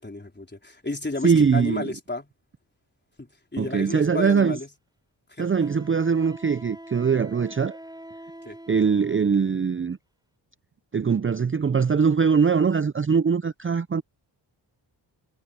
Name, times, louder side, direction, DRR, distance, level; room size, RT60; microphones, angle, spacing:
voice 1, 0.0-2.3 3.2-4.7 5.3-5.5 8.5-8.6, left 2 dB, 20° left, 4.2 m, -33 dB
voice 2, 1.2-1.8 3.6-4.6 5.4-7.8 8.7-10.0 10.9-14.0, right 6 dB, 25° right, 0.6 m, -22 dB
Wind instrument woodwind instrument, 5.6-9.7, right 1 dB, 10° right, 7.7 m, -44 dB
cardioid pair, 50°, 47 cm